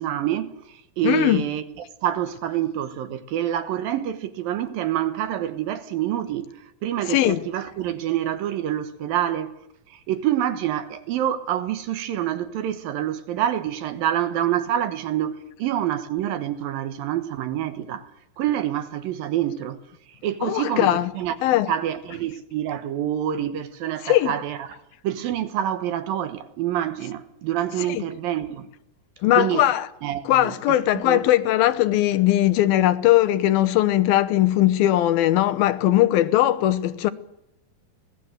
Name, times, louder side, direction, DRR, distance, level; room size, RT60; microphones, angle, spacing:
voice 1, 0.0-1.6 2.0-6.5 6.8-9.5 9.9-18.1 18.4-19.8 20.2-21.3 21.7-28.7 29.3-29.7 30.0-31.2, right 11 dB, 80° right, 2.9 m, -27 dB
voice 2, 1.0-1.4 7.1-7.4 20.4-21.1 21.4-21.7 24.0-24.4 27.9-28.0 29.2-29.9 30.3-37.1, left 14 dB, 85° left, 2.8 m, -19 dB
25.0 x 18.5 x 7.9 m
omnidirectional pair, 4.1 m